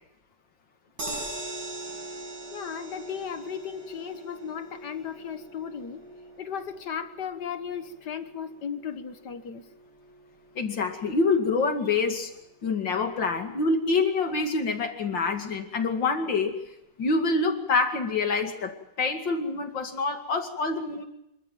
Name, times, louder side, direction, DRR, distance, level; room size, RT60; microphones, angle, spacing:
sound 1, 1.0-13.2 13.6-13.7 14.0-14.1, right 2 dB, 70° right, 6.3 m, -42 dB
voice 1, 2.5-6.0 6.4-9.6, left 7 dB, 65° left, 10 dB, 1.9 m, -36 dB
voice 2, 10.6-12.3 12.6-16.6 17.0-21.1, left 3 dB, 85° left, 5 dB, 3.0 m, -26 dB
26.5 x 13.5 x 9.1 m, 0.84 s
omnidirectional pair, 2.0 m